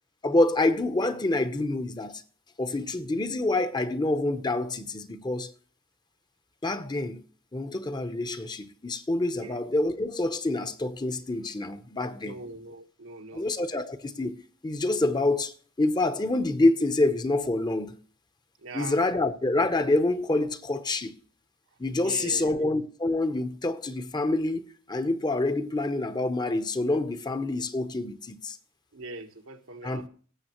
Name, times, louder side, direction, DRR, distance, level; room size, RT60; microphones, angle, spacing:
voice 1, 0.2-2.2 2.6-5.5 6.6-7.2 7.5-12.3 13.3-14.4 14.6-18.0 18.7-21.1 21.8-28.6 29.8-30.1, left 2 dB, 20° left, 0.7 m, -27 dB
voice 2, 12.2-13.5 18.6-19.0 22.0-22.7 28.9-30.1, right 3 dB, 90° right, 1.4 m, -41 dB
18.0 x 7.2 x 3.0 m
head